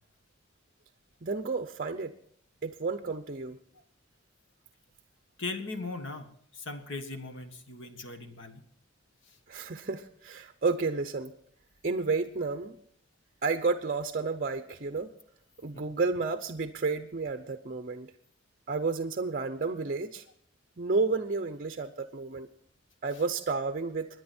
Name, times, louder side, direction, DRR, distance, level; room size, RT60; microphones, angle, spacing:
voice 1, 1.2-2.1 2.6-3.6 9.5-11.3 11.8-12.8 13.4-15.1 15.6-18.1 18.7-20.3 20.8-22.5 23.0-24.1, right 4 dB, 45° right, 8 dB, 0.7 m, -31 dB
voice 2, 5.4-8.6 15.7-15.8, left 3 dB, 70° left, 7 dB, 1.6 m, -39 dB
25.0 x 10.0 x 4.4 m, 0.64 s
head